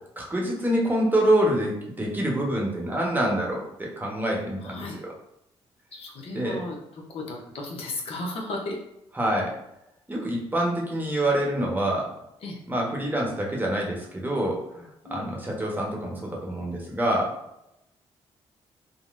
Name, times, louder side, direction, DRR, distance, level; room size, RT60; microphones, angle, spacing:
voice 1, 0.2-4.8 6.3-6.6 9.2-9.5 10.1-12.1 12.7-17.3, right 1 dB, 15° right, -2 dB, 0.9 m, -26 dB
voice 2, 4.6-5.0 5.9-8.8 12.4-12.6 15.0-15.3, left 2 dB, 65° left, 0 dB, 0.7 m, -35 dB
3.7 x 2.1 x 2.5 m, 0.84 s
cardioid pair, 70°, 11 cm